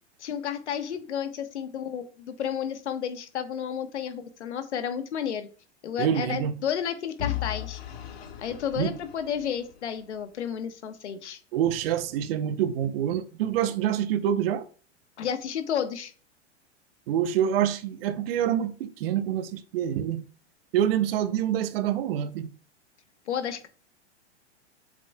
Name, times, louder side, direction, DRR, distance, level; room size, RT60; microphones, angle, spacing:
voice 1, 0.2-5.5 5.8-7.8 8.4-11.4 15.2-16.1 23.3-23.7, left 8 dB, 75° left, 1.3 m, -32 dB
voice 2, 6.0-6.5 8.8-8.9 11.5-14.7 17.1-20.2 20.7-22.5, right 10 dB, 55° right, 0.9 m, -26 dB
Vehicle / Engine, 7.2-10.2, left 12 dB, 60° left, 1.4 m, -36 dB
7.4 x 5.5 x 2.3 m
hypercardioid pair, 115°, 35 cm